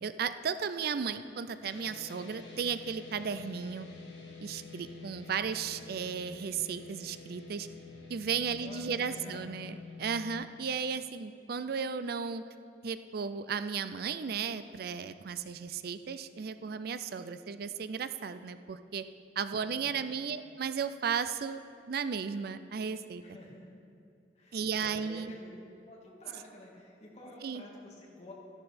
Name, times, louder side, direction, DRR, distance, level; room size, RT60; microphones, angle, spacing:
voice 1, 0.0-3.9 4.4-7.7 8.1-12.4 12.8-19.0 19.4-21.6 21.9-23.2 24.5-25.3 27.4-27.6, right 6 dB, 60° right, 12 dB, 0.4 m, -35 dB
sound 1, 1.6-10.3, left 4 dB, 75° left, 2.0 m, -48 dB
voice 2, 8.6-9.5 19.6-20.2 23.2-23.8 24.4-25.6 25.9-28.3, left 1 dB, 40° left, -3 dB, 2.3 m, -50 dB
13.5 x 12.0 x 4.3 m, 2.4 s
head